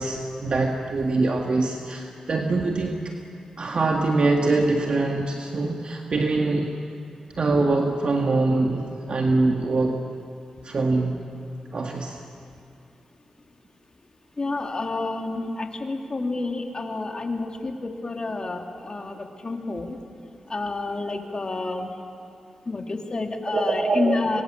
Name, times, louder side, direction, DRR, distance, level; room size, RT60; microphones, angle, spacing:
voice 1, 0.0-3.1 3.6-6.7 7.4-10.1 10.6-11.3 11.7-12.2 23.5-24.4, right 3 dB, 55° right, 2 dB, 1.7 m, -24 dB
voice 2, 14.4-20.0 20.5-21.9 22.7-24.4, left 3 dB, 40° left, 3 dB, 2.9 m, -29 dB
26.0 x 22.5 x 7.5 m, 2.5 s
cardioid pair, 55°, 2 cm